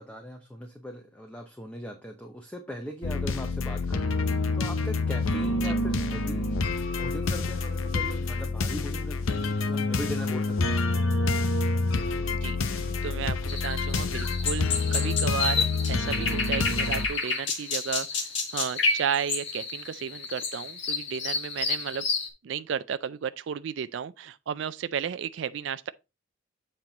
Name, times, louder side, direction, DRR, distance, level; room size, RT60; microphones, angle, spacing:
voice 1, 0.0-10.9, equal, 5° left, 0.7 m, -40 dB
sound 1, 3.0-17.1, left 3 dB, 85° left, 0.8 m, -27 dB
voice 2, 12.3-22.0 22.4-25.9, right 7 dB, 65° right, 0.4 m, -33 dB
sound 2, 13.5-22.3, left 4 dB, 65° left, 1.8 m, -30 dB
7.6 x 4.4 x 3.9 m
head